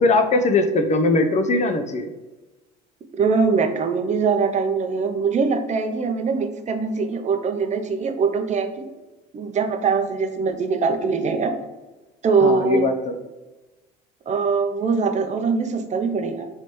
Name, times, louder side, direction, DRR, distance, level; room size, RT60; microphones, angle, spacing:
voice 1, 0.0-2.1 12.4-13.1, left 2 dB, 35° left, 7 dB, 0.5 m, -20 dB
voice 2, 3.1-8.8 9.3-11.5 12.2-12.9 14.3-16.5, right 5 dB, 35° right, 6 dB, 0.5 m, -22 dB
3.3 x 3.0 x 4.2 m, 1.1 s
supercardioid pair, 80°, 21 cm